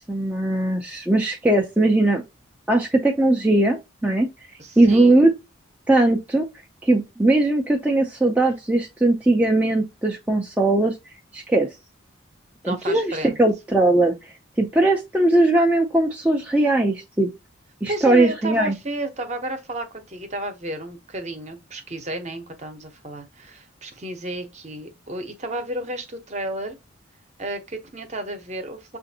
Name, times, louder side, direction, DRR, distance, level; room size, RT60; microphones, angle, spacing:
voice 1, 0.1-2.2 2.7-4.3 4.8-5.3 5.9-6.5 6.8-11.0 11.3-11.7 12.6-17.3 17.8-18.7, right 2 dB, 5° right, 0.4 m, -19 dB
voice 2, 4.6-5.2 12.7-13.4 17.9-26.8 27.4-29.0, right 1 dB, 35° right, 0.7 m, -32 dB
6.6 x 2.5 x 2.7 m
head